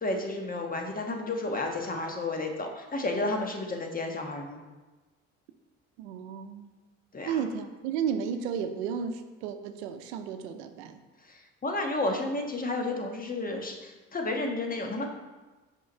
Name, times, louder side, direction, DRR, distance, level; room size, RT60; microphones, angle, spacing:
voice 1, 0.0-4.6 7.1-7.4 11.3-15.1, left 2 dB, 25° left, 3 dB, 1.3 m, -32 dB
voice 2, 6.0-6.7 7.3-11.0, right 7 dB, 80° right, 8 dB, 0.7 m, -33 dB
5.5 x 4.7 x 5.4 m, 1.2 s
hypercardioid pair, 65°, 32 cm